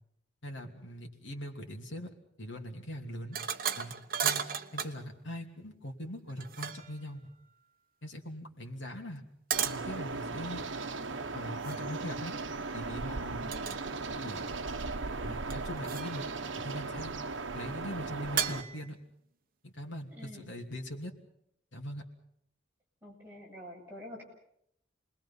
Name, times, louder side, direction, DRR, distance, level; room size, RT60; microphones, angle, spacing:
voice 1, 0.4-2.1 2.4-3.4 3.8-3.9 4.2-4.4 4.7-7.2 8.0-9.2 9.6-10.6 11.3-12.3 12.7-13.5 14.1-14.5 15.2-16.2 16.6-17.1 17.5-19.0 19.6-21.1 21.7-22.0, equal, 75° left, 2 dB, 3.0 m, -41 dB
sound 1, 3.3-5.0 6.3-7.0 9.5-9.9 11.6-11.9 13.5-13.8 14.2-14.8 15.5-16.3 18.4-18.9, right 8 dB, 45° right, 1.0 m, -34 dB
sound 2, 9.5-18.6, right 3 dB, 75° right, 1.1 m, -37 dB
voice 2, 20.1-20.5 23.0-24.2, left 1 dB, 10° right, -4 dB, 7.5 m, -47 dB
29.0 x 21.0 x 5.7 m, 0.74 s
head